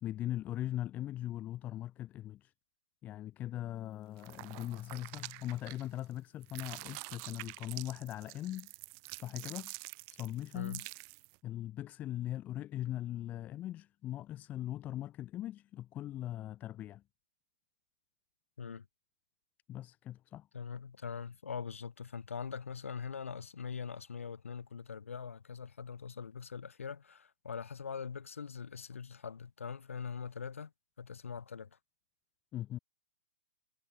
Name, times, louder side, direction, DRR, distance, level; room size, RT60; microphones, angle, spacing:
voice 1, 0.0-2.5 3.0-8.7 9.1-9.7 10.1-10.8 11.4-17.0 19.7-20.5 32.5-32.8, left 13 dB, 25° left, 2.5 m, -40 dB
sound 1, 4.2-6.1 6.4-11.4, right 38 dB, 35° right, 1.5 m, -47 dB
voice 2, 20.5-30.7 31.0-31.8, left 6 dB, 85° left, 1.7 m, -42 dB
hypercardioid pair, 140°, 7 cm